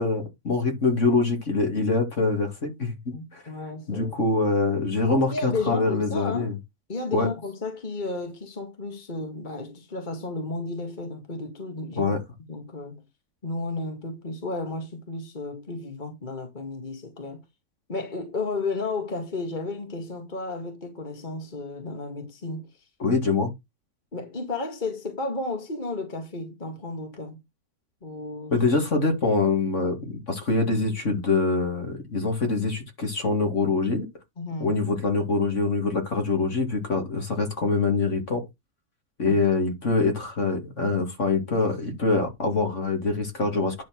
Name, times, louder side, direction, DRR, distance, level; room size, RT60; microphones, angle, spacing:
voice 1, 0.0-2.9 3.3-3.4 3.9-6.5 7.1-7.3 11.9-12.2 23.0-23.5 28.5-34.1 34.6-38.5 39.2-43.7, left 3 dB, 50° left, 2.9 m, -24 dB
voice 2, 3.1-4.2 5.1-6.6 6.9-12.1 12.5-13.0 13.4-17.4 17.9-22.7 24.1-27.4 28.0-28.6 34.4-34.7 39.2-39.4, left 3 dB, 30° left, 2.1 m, -33 dB
10.5 x 4.4 x 6.1 m
omnidirectional pair, 1.6 m